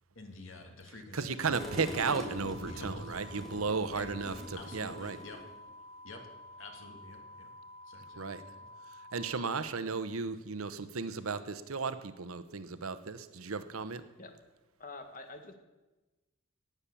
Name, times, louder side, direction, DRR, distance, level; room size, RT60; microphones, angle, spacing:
voice 1, 0.1-3.2 3.9-4.1 4.5-5.4 6.0-6.2 6.6-7.5 7.9-8.7, left 2 dB, 70° left, 4 dB, 2.3 m, -49 dB
voice 2, 1.1-5.2 8.2-8.4 9.1-14.0, right 4 dB, 85° right, 12 dB, 0.9 m, -35 dB
sound 1, 1.4-9.6, left 1 dB, 20° left, 1.0 m, -51 dB
sound 2, 1.5-5.6, equal, ahead, 1.6 m, -43 dB
voice 3, 14.8-15.6, left 3 dB, 40° left, 6 dB, 1.5 m, -46 dB
18.5 x 7.3 x 6.9 m, 1.1 s
head